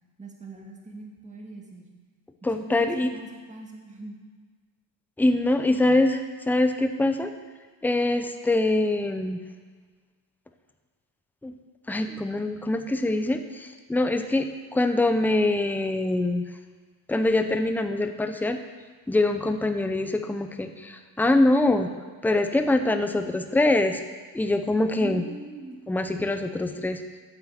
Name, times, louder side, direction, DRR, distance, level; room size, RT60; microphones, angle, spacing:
voice 1, 0.2-1.9 2.4-4.2 25.0-25.8, right 2 dB, 15° right, 0 dB, 1.9 m, -41 dB
voice 2, 2.4-3.1 5.2-7.3 7.8-9.4 11.4-11.5 11.9-16.4 17.1-18.6 19.1-21.9 22.2-24.0 24.3-25.2 25.9-27.0, left 2 dB, 5° left, 7 dB, 0.6 m, -24 dB
9.2 x 7.5 x 7.3 m, 1.5 s
cardioid pair, 130°, 41 cm